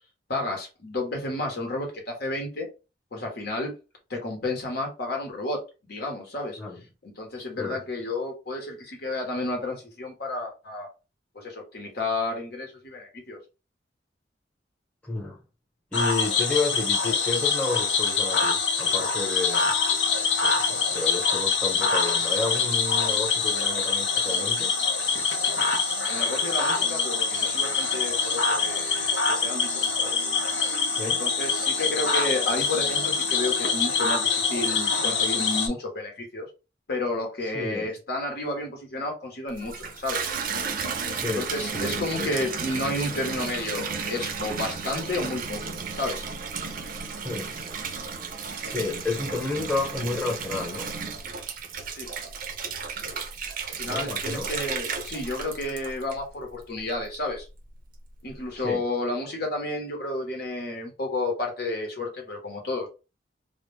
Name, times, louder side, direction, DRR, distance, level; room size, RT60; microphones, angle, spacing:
voice 1, 0.3-2.7 3.1-3.7 4.1-5.6 5.8-6.6 7.0-10.9 11.3-13.4 26.1-30.2 31.0-36.5 36.9-40.3 41.3-46.2 52.0-52.1 53.8-57.5 58.2-62.9, left 2 dB, 60° left, 0.9 m, -31 dB
voice 2, 15.0-15.4 15.9-19.7 20.4-24.7 30.9-31.2 37.4-37.9 41.1-42.3 47.2-47.5 48.6-50.8 53.8-54.5 58.5-58.9, left 3 dB, 10° left, 0.9 m, -31 dB
Cricket / Frog, 15.9-35.7, left 5 dB, 85° left, 0.7 m, -25 dB
Water tap faucet / Bathtub (filling or washing), 39.5-56.4 56.9-57.5, right 5 dB, 50° right, 0.5 m, -33 dB
2.1 x 2.1 x 3.1 m
head